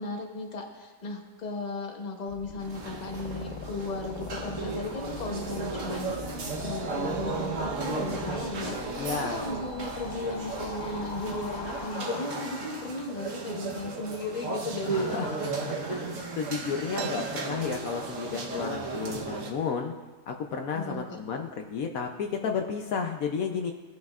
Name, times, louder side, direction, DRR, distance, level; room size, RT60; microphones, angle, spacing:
voice 1, 0.0-15.0 18.3-18.8 20.7-21.2, left 3 dB, 30° left, 2 dB, 1.1 m, -36 dB
sound 1, 2.3-13.2, left 4 dB, 50° left, 0.5 m, -41 dB
sound 2, 2.6-19.5, right 4 dB, 60° right, 1.4 m, -35 dB
voice 2, 9.0-9.4 14.9-19.9 20.3-23.7, left 6 dB, 70° left, 4 dB, 1.1 m, -32 dB
sound 3, 16.9-18.5 18.9-19.0 19.2-19.9 20.5-20.6 21.3-21.5 22.0-22.4, right 7 dB, 75° right, 1.1 m, -44 dB
17.5 x 9.3 x 2.4 m, 1.2 s
omnidirectional pair, 1.6 m